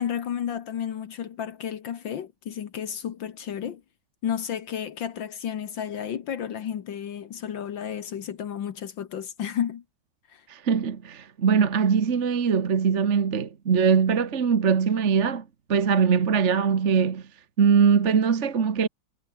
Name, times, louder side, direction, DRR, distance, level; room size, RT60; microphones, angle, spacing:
voice 1, 0.0-3.8 4.2-9.8 10.3-10.5, left 9 dB, 70° left, 2.0 m, -32 dB
voice 2, 10.5-15.4 15.7-17.2 17.6-18.9, right 6 dB, 40° right, 1.4 m, -22 dB
omnidirectional pair, 2.2 m